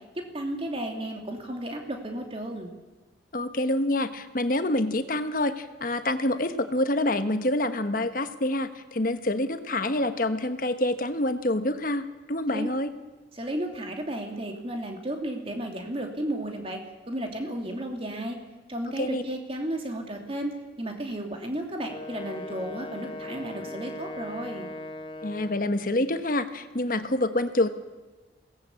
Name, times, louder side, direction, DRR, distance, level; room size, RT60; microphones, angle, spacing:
voice 1, 0.1-2.7 12.5-12.7 13.3-16.8 17.1-18.4 18.7-24.7, right 1 dB, 30° right, 3 dB, 2.8 m, -33 dB
voice 2, 3.3-12.9 19.0-19.2 25.2-27.7, left 1 dB, 45° left, 10 dB, 1.2 m, -27 dB
Wind instrument woodwind instrument, 21.8-25.9, left 2 dB, 25° left, 1.3 m, -39 dB
22.0 x 17.5 x 8.5 m, 1.2 s
head